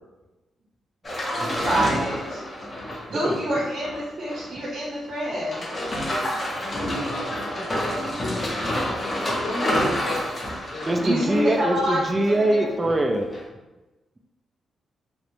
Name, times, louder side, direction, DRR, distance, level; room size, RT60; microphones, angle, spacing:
sound 1, 1.0-4.7 5.0-5.1 5.4-13.1 13.3-13.4, equal, 30° left, 0.6 m, -29 dB
voice 1, 1.6-2.4 3.1-5.6 11.0-12.7, equal, 65° right, -6 dB, 0.7 m, -27 dB
voice 2, 3.1-3.4 10.9-13.3, right 1 dB, 20° right, 4 dB, 0.3 m, -23 dB
voice 3, 6.6-8.8 9.2-11.3, left 1 dB, 70° left, -3 dB, 0.7 m, -35 dB
2.4 x 2.0 x 3.0 m, 1.1 s
cardioid pair, 100°, 0 cm